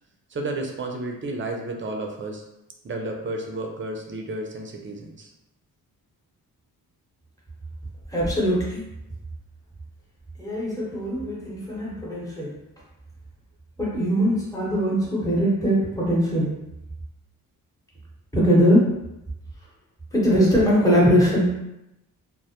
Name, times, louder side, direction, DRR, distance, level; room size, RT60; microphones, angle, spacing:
voice 1, 0.3-2.4 2.8-5.3, right 2 dB, 30° right, 2 dB, 0.5 m, -32 dB
voice 2, 8.1-8.8 10.4-12.6 13.8-16.5 18.3-18.9 20.1-21.5, equal, 10° left, -5 dB, 0.9 m, -21 dB
2.1 x 2.0 x 2.8 m, 0.89 s
cardioid pair, 60°, 38 cm